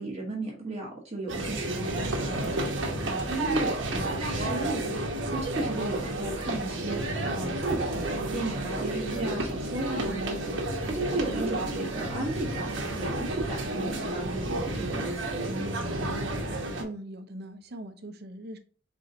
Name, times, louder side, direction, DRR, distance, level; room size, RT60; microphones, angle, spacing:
voice 1, 0.0-2.7 3.0-8.0 8.3-16.0, right 2 dB, 30° right, 1.3 m, -35 dB
sound 1, 1.3-16.8, right 1 dB, 70° right, 1.1 m, -31 dB
voice 2, 16.8-18.6, right 1 dB, 55° right, 0.7 m, -40 dB
4.8 x 3.8 x 2.7 m
head